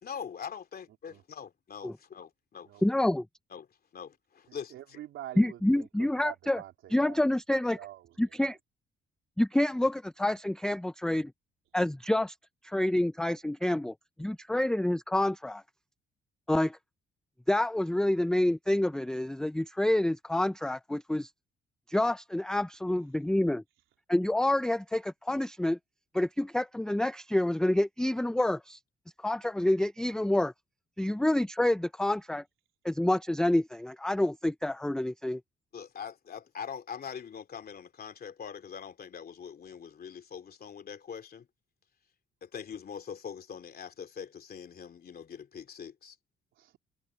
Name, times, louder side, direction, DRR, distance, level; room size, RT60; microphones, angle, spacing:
voice 1, 0.0-2.8 3.5-3.7 3.9-5.0 35.7-41.5 42.4-46.2, left 7 dB, 50° left, 3.0 m, -43 dB
voice 2, 2.8-3.3 5.4-6.6 6.9-7.8 8.2-8.6 9.4-11.3 11.7-12.3 12.6-13.9 14.2-15.6 16.5-16.8 17.5-21.3 21.9-23.6 24.1-25.8 26.1-28.8 29.2-30.5 31.0-32.4 32.8-35.4, left 1 dB, 5° left, 0.5 m, -28 dB
voice 3, 4.5-7.2 7.7-8.3 46.6-46.8, right 13 dB, 85° right, 3.3 m, -46 dB
cardioid pair, 90°, 20 cm